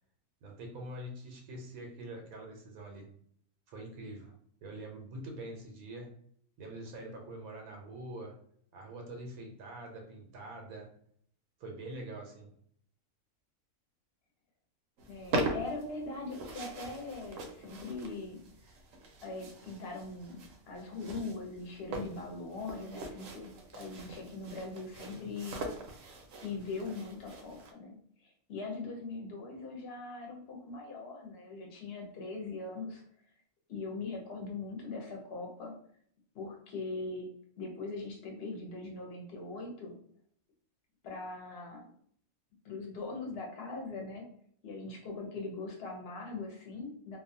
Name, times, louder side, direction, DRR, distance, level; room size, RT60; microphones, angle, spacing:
voice 1, 0.4-3.1 3.7-4.3 4.6-6.2 6.6-8.4 8.7-10.9 11.6-12.5 25.1-25.4, right 1 dB, 90° right, 1 dB, 1.1 m, -45 dB
sound 1, 15.0-27.7, right 2 dB, 70° right, 0.9 m, -41 dB
voice 2, 15.1-18.4 19.2-25.6 26.4-33.0 33.7-35.8 36.3-37.3 37.6-40.0 41.0-41.8 42.6-44.3 44.6-47.2, left 3 dB, 55° left, 1 dB, 0.8 m, -41 dB
2.5 x 2.2 x 2.6 m, 0.64 s
omnidirectional pair, 1.5 m